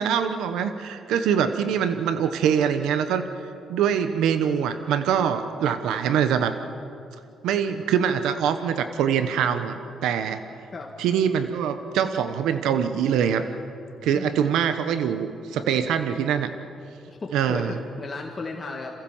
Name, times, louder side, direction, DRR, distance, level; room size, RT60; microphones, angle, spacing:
voice 1, 0.0-3.3 3.7-6.5 7.4-9.7 10.0-10.4 11.0-13.5 14.0-16.5 17.3-17.8, right 8 dB, 85° right, 9 dB, 1.0 m, -24 dB
voice 2, 14.0-14.4 17.1-18.9, left 3 dB, 35° left, 1 dB, 1.8 m, -35 dB
28.0 x 15.5 x 7.3 m, 2.6 s
cardioid pair, 90°, 0 cm